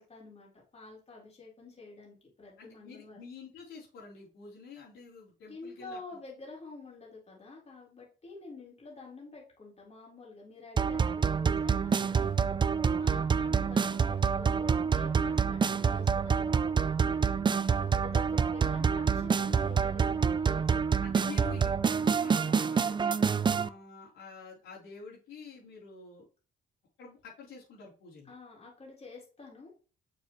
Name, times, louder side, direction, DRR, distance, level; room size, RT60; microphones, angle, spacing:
voice 1, 0.0-3.2 5.5-12.3 13.0-17.2 17.8-21.0 28.3-29.7, left 3 dB, 30° left, -4 dB, 3.9 m, -49 dB
voice 2, 2.6-6.0 12.9-13.2 21.0-21.7 22.0-23.2 23.6-26.3 27.0-28.3, left 5 dB, 85° left, -5 dB, 3.7 m, -48 dB
sound 1, 10.8-23.7, right 6 dB, 25° right, 0.4 m, -27 dB
6.7 x 6.2 x 3.1 m, 0.36 s
cardioid pair, 90°, 20 cm